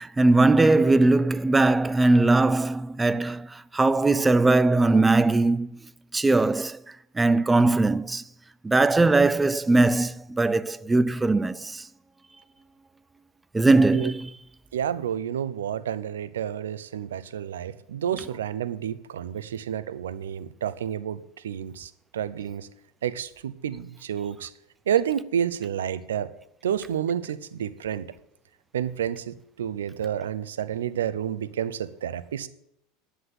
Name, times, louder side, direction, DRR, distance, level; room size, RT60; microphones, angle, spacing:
voice 1, 0.0-5.8 6.1-6.8 7.1-8.2 8.6-11.9 13.5-14.3, right 2 dB, 15° right, 0.5 m, -20 dB
voice 2, 14.7-22.7 23.0-24.5 24.9-26.3 26.6-28.1 28.7-32.5, right 9 dB, 75° right, 0.8 m, -30 dB
10.5 x 7.9 x 7.9 m
hypercardioid pair, 80°, 0 cm